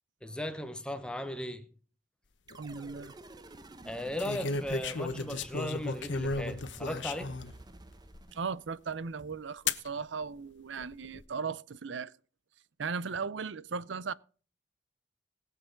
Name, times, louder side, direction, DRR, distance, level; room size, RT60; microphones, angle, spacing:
voice 1, 0.2-1.7 3.8-7.3, equal, 5° left, 0.9 m, -37 dB
sound 1, 2.5-2.9 4.2-7.5 8.1-8.2 9.7-9.9 10.8-11.3, left 3 dB, 75° left, 1.0 m, -34 dB
sound 2, 2.5-8.9, right 1 dB, 20° right, 0.8 m, -51 dB
voice 2, 2.6-3.1 8.3-12.1 12.8-14.1, right 5 dB, 80° right, 0.6 m, -37 dB
21.0 x 7.4 x 3.8 m
head